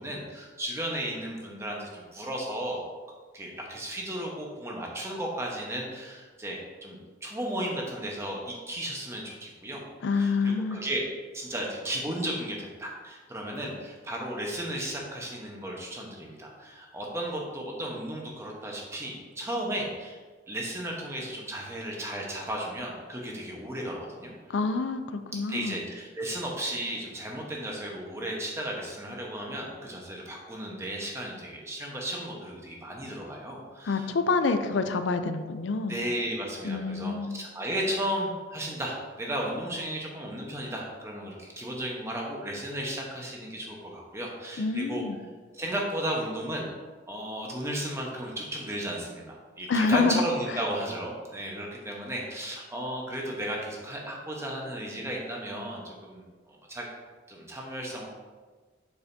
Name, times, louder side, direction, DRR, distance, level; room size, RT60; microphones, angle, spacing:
voice 1, 0.0-2.9 3.3-9.8 10.1-11.0 11.3-20.2 20.5-24.3 25.5-34.1 35.9-45.0 45.5-46.7 47.1-56.9 57.3-58.1, right 1 dB, 15° right, -2 dB, 1.1 m, -34 dB
voice 2, 10.0-10.8 24.5-25.8 33.8-36.0 36.6-37.3 44.6-45.2 49.7-50.2, left 4 dB, 90° left, 9 dB, 0.5 m, -27 dB
6.9 x 6.5 x 2.7 m, 1.4 s
head